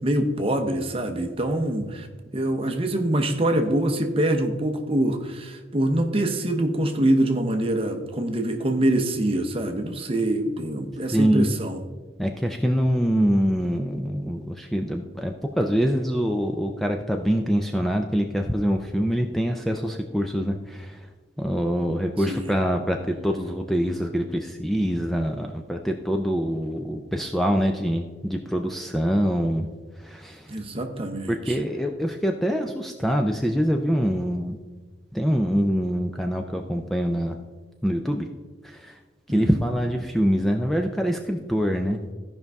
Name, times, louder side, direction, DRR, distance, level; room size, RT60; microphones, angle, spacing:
voice 1, 0.0-2.1 2.3-11.8 22.2-22.6 30.5-31.6 39.3-39.6, right 1 dB, 30° right, 6 dB, 0.8 m, -25 dB
voice 2, 11.1-11.5 12.2-21.0 21.4-29.7 30.0-30.5 31.3-34.6 35.1-37.4 37.8-38.3 38.6-39.0 39.3-42.0, equal, ahead, 3 dB, 0.4 m, -24 dB
14.5 x 5.3 x 3.5 m, 1.4 s
head